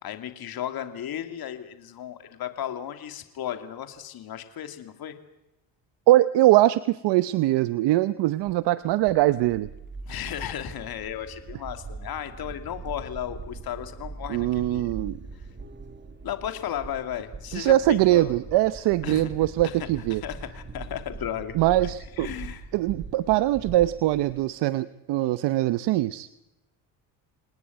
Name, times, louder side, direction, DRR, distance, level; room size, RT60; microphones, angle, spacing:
voice 1, 0.0-5.1 10.1-14.9 16.2-17.7 18.1-18.3 19.0-19.3 20.2-21.6 22.2-22.6, left 10 dB, 60° left, 8 dB, 2.9 m, -34 dB
voice 2, 6.1-9.7 14.3-15.2 17.5-20.2 21.5-22.3 22.7-26.3, right 15 dB, 75° right, 15 dB, 1.0 m, -22 dB
sound 1, 8.5-24.5, right 4 dB, 25° right, 2.0 m, -41 dB
28.0 x 19.0 x 9.5 m, 0.93 s
supercardioid pair, 90°, 42 cm